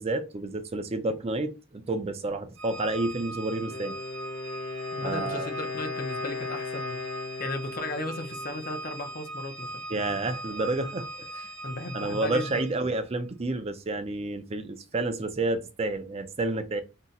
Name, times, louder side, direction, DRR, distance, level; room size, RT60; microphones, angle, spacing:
voice 1, 0.0-3.9 5.0-5.5 9.9-11.5 11.9-16.8, right 2 dB, 30° right, 0.4 m, -30 dB
Organ, 2.6-13.0, right 1 dB, 65° right, 0.7 m, -40 dB
Wind instrument woodwind instrument, 3.6-9.3, left 4 dB, 80° left, 0.9 m, -37 dB
voice 2, 4.9-7.0 7.4-9.8 11.6-12.6, left 2 dB, 45° left, 0.6 m, -35 dB
2.7 x 2.1 x 3.8 m
head